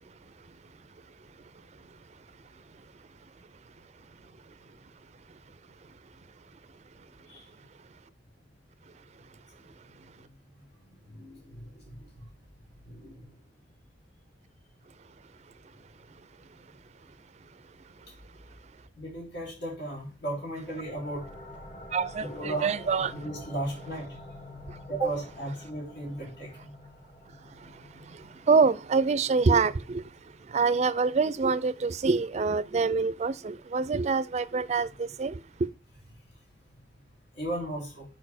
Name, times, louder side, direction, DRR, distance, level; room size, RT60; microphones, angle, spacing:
voice 1, 11.0-12.2 12.8-13.3 19.0-21.2 22.2-22.7 23.1-24.1 24.9-26.7 37.4-38.1, right 2 dB, 90° left, 3.6 m, -35 dB
sound 1, 20.6-32.0, left 1 dB, 40° left, 1.3 m, -48 dB
voice 2, 21.9-23.1 28.5-30.0 30.5-35.4, right 4 dB, 35° right, 0.4 m, -25 dB
6.7 x 4.6 x 4.2 m
head